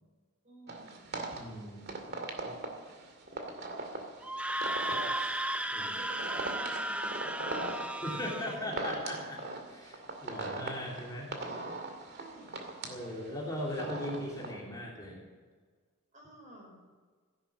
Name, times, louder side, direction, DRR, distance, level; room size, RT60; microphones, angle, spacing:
voice 1, 0.4-1.1 5.8-8.9 12.2-12.6 16.1-16.8, right 1 dB, 35° right, -1 dB, 5.5 m, -50 dB
sound 1, 0.7-14.5, right 2 dB, 50° right, 2.4 m, -40 dB
voice 2, 1.3-2.0 5.7-5.9 8.0-9.4 9.7-11.3 12.9-15.2, left 1 dB, 20° left, -3 dB, 3.1 m, -39 dB
Screaming, 4.2-8.6, right 1 dB, 5° right, 0.6 m, -35 dB
15.0 x 11.0 x 7.4 m, 1.5 s
head